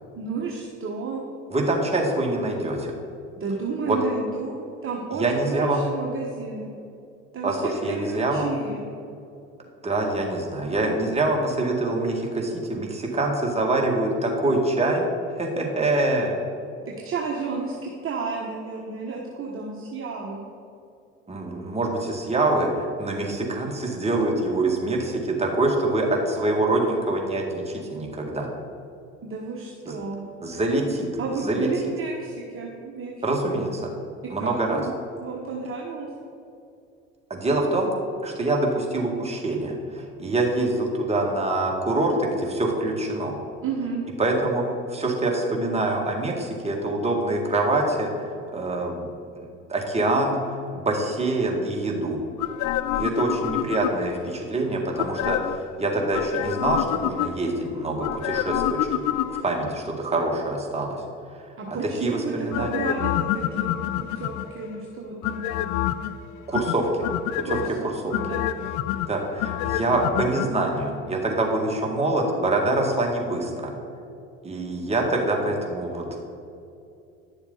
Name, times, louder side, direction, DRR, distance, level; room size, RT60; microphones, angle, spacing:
voice 1, 0.1-1.2 3.4-6.7 7.3-8.8 16.8-20.4 29.2-30.2 31.2-33.3 34.2-34.9 35.2-36.1 43.6-44.0 61.6-63.7 64.0-65.8 67.4-68.5, right 4 dB, 35° right, -2 dB, 1.4 m, -32 dB
voice 2, 1.5-2.9 3.8-4.0 5.2-5.8 7.4-8.5 9.8-15.1 15.4-16.4 21.3-28.5 29.9-30.0 30.4-31.7 33.2-33.9 34.3-34.8 37.3-37.9 38.2-43.4 44.2-44.6 44.9-49.1 49.7-52.2 52.9-61.0 62.0-62.7 66.5-67.1 67.4-67.6 67.8-68.2 69.1-73.7 74.4-76.0, right 2 dB, 15° right, 0 dB, 2.0 m, -25 dB
sound 1, 52.4-54.2 55.0-55.7 56.1-57.6 58.0-59.7 62.5-64.6 65.2-66.1 66.5-67.7 68.1-70.5 70.8-70.9, left 13 dB, 50° left, 0.5 m, -27 dB
10.5 x 7.0 x 4.0 m, 2.6 s
hypercardioid pair, 65°, 37 cm